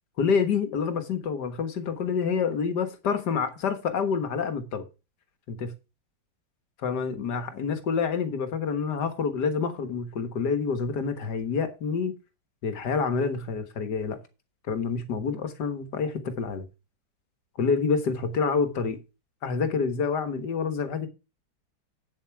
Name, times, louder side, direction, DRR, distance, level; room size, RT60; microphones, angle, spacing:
voice 1, 0.2-4.8 5.5-5.7 6.8-12.1 12.6-14.2 14.7-16.7 17.6-19.0 19.4-21.1, left 5 dB, 65° left, 2.0 m, -27 dB
9.0 x 7.4 x 4.7 m
omnidirectional pair, 2.0 m